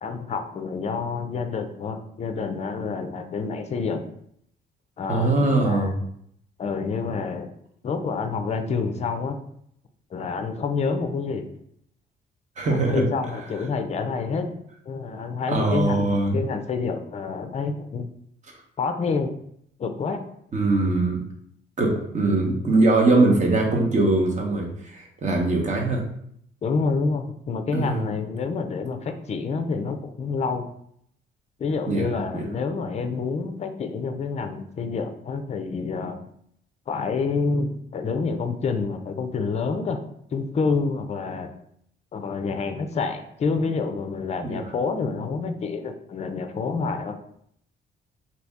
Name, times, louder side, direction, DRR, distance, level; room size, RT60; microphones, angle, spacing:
voice 1, 0.0-4.0 5.0-5.9 6.6-7.5 7.8-9.4 10.1-11.5 12.7-14.5 14.9-18.1 18.8-19.3 19.8-20.2 26.6-30.7 31.6-36.2 36.9-40.0 40.3-41.5 42.1-47.2, left 4 dB, 35° left, 7 dB, 0.4 m, -28 dB
voice 2, 5.1-5.9 12.6-13.0 15.5-16.4 20.5-21.2 21.8-26.0 27.7-28.0 31.9-32.1 32.3-32.4 44.4-44.6, right 2 dB, 40° right, 0 dB, 0.8 m, -21 dB
2.7 x 2.7 x 3.4 m, 0.71 s
cardioid pair, 90°, 20 cm